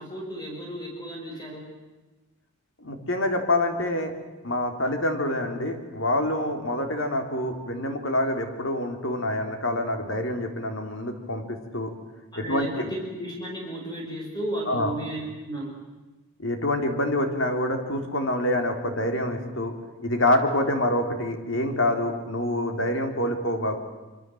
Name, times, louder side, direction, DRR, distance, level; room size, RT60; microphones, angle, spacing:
voice 1, 0.0-1.7 12.3-15.7, right 1 dB, 20° left, -1 dB, 5.4 m, -34 dB
voice 2, 2.8-4.1 4.4-11.9 12.4-12.9 14.7-14.9 16.4-19.7 20.0-23.8, left 1 dB, 60° left, 5 dB, 3.4 m, -26 dB
26.5 x 25.5 x 7.8 m, 1.2 s
head